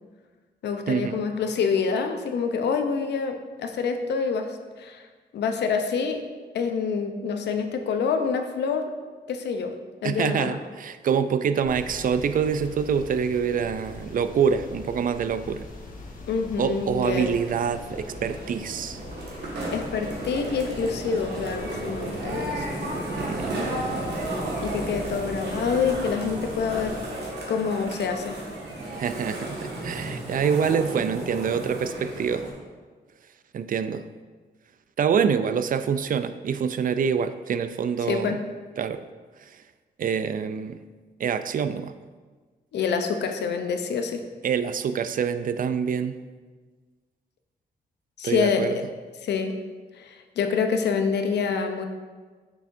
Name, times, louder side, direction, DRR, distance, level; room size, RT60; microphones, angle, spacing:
voice 1, 0.6-5.1 5.3-6.2 6.5-8.9 9.3-9.7 10.0-10.6 16.3-17.4 19.7-22.7 24.6-27.0 27.5-28.4 38.1-38.4 42.7-44.2 48.2-48.7 49.2-49.5 50.0-51.8, left 5 dB, 85° left, 6 dB, 0.6 m, -26 dB
voice 2, 10.0-15.6 16.6-19.0 23.2-23.6 28.9-32.4 33.5-34.0 35.0-38.4 38.8-39.0 39.4-39.6 40.0-40.8 41.2-41.9 44.4-46.1 48.2-48.8, right 7 dB, 55° right, 11 dB, 0.4 m, -26 dB
sound 1, 11.6-27.0, left 2 dB, 50° left, 1.2 m, -42 dB
sound 2, 17.1-32.5, right 1 dB, 75° right, 1.7 m, -33 dB
6.8 x 6.2 x 2.6 m, 1.4 s
cardioid pair, 80°, 17 cm